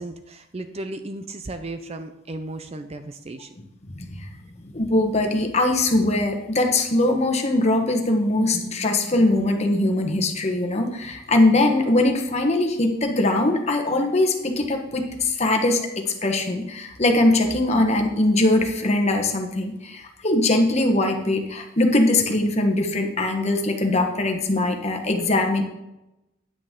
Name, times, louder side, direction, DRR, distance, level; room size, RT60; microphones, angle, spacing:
voice 1, 0.0-3.6, right 2 dB, 30° right, 8 dB, 0.5 m, -35 dB
voice 2, 3.9-4.3 4.6-25.6, left 2 dB, 35° left, 3 dB, 1.1 m, -21 dB
9.6 x 8.7 x 3.7 m, 0.92 s
head